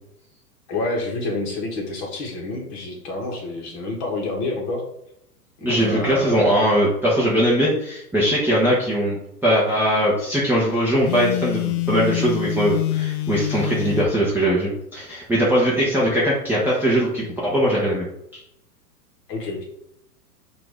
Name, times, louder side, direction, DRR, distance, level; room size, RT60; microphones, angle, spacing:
voice 1, 0.7-4.8 5.6-6.4 19.3-19.6, left 2 dB, 35° left, 0 dB, 1.4 m, -28 dB
voice 2, 5.6-9.2 9.4-18.0 18.3-18.4, equal, 5° right, -8 dB, 0.7 m, -20 dB
Telephone, 11.0-14.1, left 15 dB, 65° left, 0.5 m, -25 dB
5.8 x 2.6 x 3.4 m, 0.78 s
hypercardioid pair, 115°, 49 cm